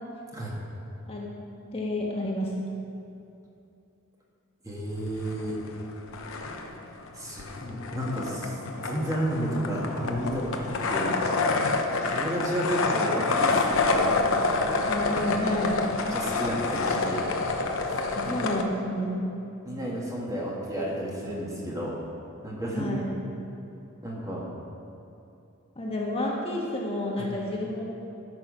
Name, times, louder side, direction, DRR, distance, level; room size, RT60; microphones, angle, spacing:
voice 1, 1.7-2.5 14.9-15.8 18.1-19.3 22.7-23.1 25.8-27.8, left 1 dB, 25° left, -3 dB, 1.4 m, -30 dB
voice 2, 4.6-5.6 7.2-11.1 12.1-14.1 16.1-17.3 17.9-18.0 18.3-18.5 19.7-22.0 22.4-22.9 24.0-24.5 27.2-27.3, equal, 15° right, -3 dB, 1.7 m, -32 dB
sound 1, 5.1-5.8 6.1-18.6, left 3 dB, 65° left, 0.8 m, -28 dB
13.5 x 6.1 x 6.1 m, 2.8 s
head